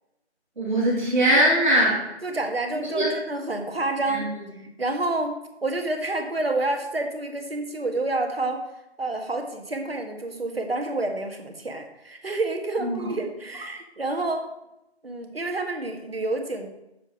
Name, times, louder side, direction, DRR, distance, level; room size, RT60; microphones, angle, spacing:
voice 1, 0.6-2.0 2.9-3.2 4.1-4.4 12.8-13.1, right 1 dB, 45° right, -5 dB, 2.9 m, -21 dB
voice 2, 2.2-4.3 4.8-5.3 5.6-8.6 9.0-14.5 15.0-16.7, right 2 dB, 60° right, 4 dB, 1.7 m, -28 dB
7.1 x 6.7 x 6.1 m, 0.90 s
figure-of-eight pair, 160°, 33 cm